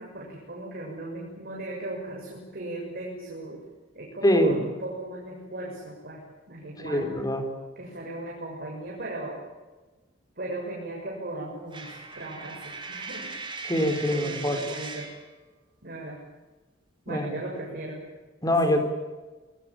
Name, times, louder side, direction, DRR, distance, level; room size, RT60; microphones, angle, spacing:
voice 1, 0.0-3.6 3.9-7.1 7.8-9.4 10.4-13.3 14.1-15.1 15.8-16.2 17.1-18.0 18.5-18.8, right 2 dB, 50° right, -2 dB, 7.2 m, -37 dB
voice 2, 4.2-4.6 6.8-7.5 13.6-14.6 17.1-17.3 18.4-18.8, equal, 20° left, 6 dB, 4.1 m, -23 dB
Coin (dropping), 11.7-15.2, right 4 dB, 25° right, 4.9 m, -39 dB
28.0 x 20.5 x 9.1 m, 1.2 s
head